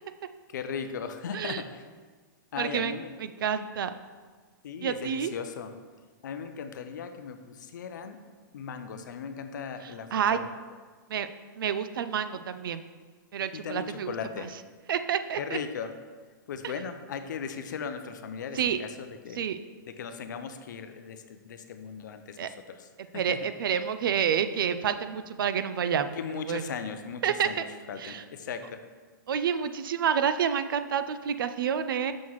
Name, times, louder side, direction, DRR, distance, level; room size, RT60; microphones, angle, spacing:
voice 1, 0.5-1.9 2.5-3.1 4.6-5.7 6.2-8.2 8.5-10.6 13.5-14.5 15.4-15.9 16.5-19.4 19.9-23.5 26.1-28.8, left 6 dB, 60° left, 8 dB, 0.5 m, -38 dB
voice 2, 2.6-3.9 4.8-5.3 10.1-10.4 11.1-11.3 11.6-12.8 13.3-14.5 14.9-15.6 18.6-18.8 19.4-19.6 22.4-22.5 23.1-26.2 26.5-26.6 27.2-27.6 28.0-28.2 29.3-32.1, right 8 dB, 85° right, 11 dB, 0.4 m, -29 dB
6.2 x 5.6 x 3.0 m, 1.5 s
hypercardioid pair, 180°, 11 cm